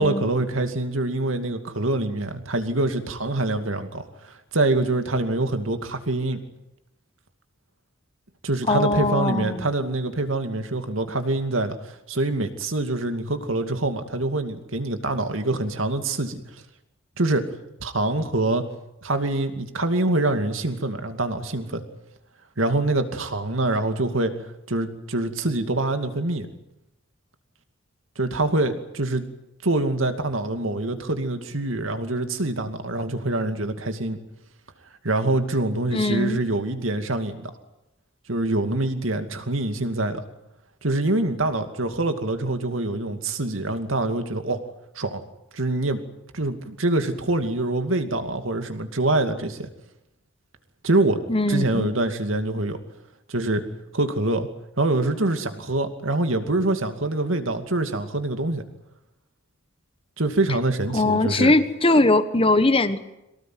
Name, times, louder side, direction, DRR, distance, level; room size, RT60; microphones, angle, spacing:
voice 1, 0.0-6.4 8.4-16.6 17.2-17.4 17.8-18.6 19.0-21.8 22.6-24.3 24.7-26.5 28.2-29.3 29.6-34.2 35.0-37.5 38.3-40.2 40.8-44.6 45.0-45.2 45.5-46.0 46.3-49.7 50.8-51.2 51.5-52.8 53.3-53.7 53.9-54.5 54.8-58.6 60.2-61.5, right 2 dB, 85° right, 7 dB, 2.5 m, -25 dB
voice 2, 8.7-9.7 35.9-36.4 51.3-51.9 60.9-63.0, left 2 dB, 30° left, 10 dB, 1.3 m, -20 dB
23.5 x 18.5 x 9.4 m, 0.92 s
head